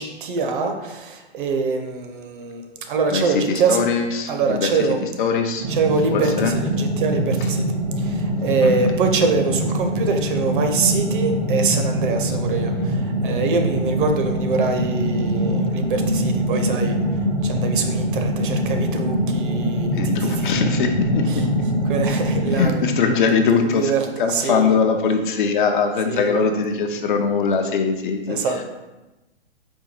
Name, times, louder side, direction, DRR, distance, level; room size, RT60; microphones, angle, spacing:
voice 1, 0.0-3.8 4.3-5.0 5.7-7.7 8.0-20.5 21.2-21.4 21.8-24.8 26.1-26.4 28.3-28.6, right 4 dB, 50° right, 5 dB, 0.6 m, -24 dB
voice 2, 3.1-4.7 5.2-5.6 6.1-6.5 8.6-8.8 19.9-21.6 22.5-23.9 24.2-28.4, left 5 dB, 50° left, 5 dB, 0.5 m, -21 dB
sound 1, 5.6-22.7, equal, 15° right, 0.3 m, -23 dB
4.5 x 2.3 x 4.2 m, 1.1 s
hypercardioid pair, 120°, 32 cm